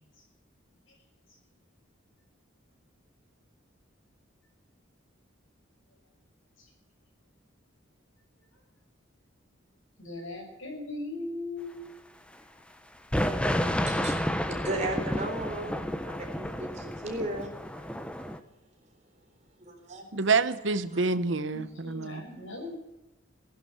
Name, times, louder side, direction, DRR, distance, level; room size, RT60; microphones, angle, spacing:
voice 1, 10.0-11.9 21.5-22.8, left 2 dB, 70° left, 1 dB, 6.2 m, -39 dB
sound 1, 13.1-18.4, equal, 5° left, 0.8 m, -31 dB
voice 2, 13.4-15.8 16.0-17.6 19.6-20.1 20.9-21.0, right 1 dB, 35° right, 2 dB, 3.8 m, -36 dB
voice 3, 20.1-22.2, right 4 dB, 70° right, 13 dB, 1.0 m, -27 dB
16.0 x 11.5 x 7.9 m, 0.98 s
head